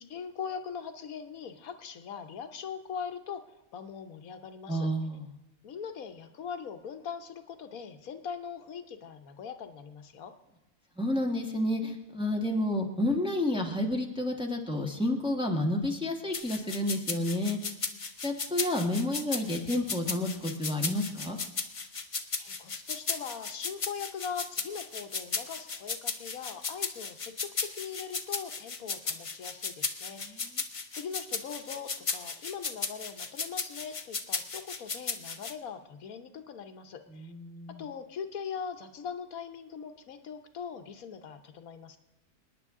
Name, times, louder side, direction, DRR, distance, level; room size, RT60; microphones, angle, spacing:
voice 1, 0.1-4.9 5.6-10.3 22.4-30.5 30.9-37.3 37.7-42.0, left 7 dB, 80° left, 8 dB, 1.4 m, -41 dB
voice 2, 4.7-5.3 11.0-17.6 18.2-21.4 30.1-30.5 37.1-37.8, left 1 dB, 5° right, 1 dB, 1.3 m, -30 dB
sound 1, 16.3-35.5, left 4 dB, 35° left, 0.6 m, -35 dB
26.5 x 9.9 x 3.7 m, 0.96 s
omnidirectional pair, 1.5 m